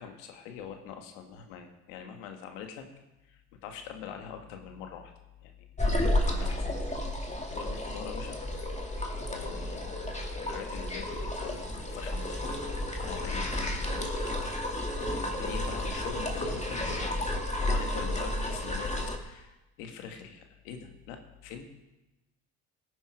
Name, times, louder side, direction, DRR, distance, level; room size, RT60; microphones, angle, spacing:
voice 1, 0.0-2.9 3.3-5.1 5.4-6.7 7.5-8.4 8.8-12.6 13.0-14.1 15.1-17.3 17.6-21.6, left 7 dB, 90° left, 5 dB, 1.8 m, -44 dB
sound 1, 5.8-19.2, left 1 dB, 20° left, 2.5 m, -32 dB
17.5 x 9.8 x 4.8 m, 1.0 s
hypercardioid pair, 65°, 37 cm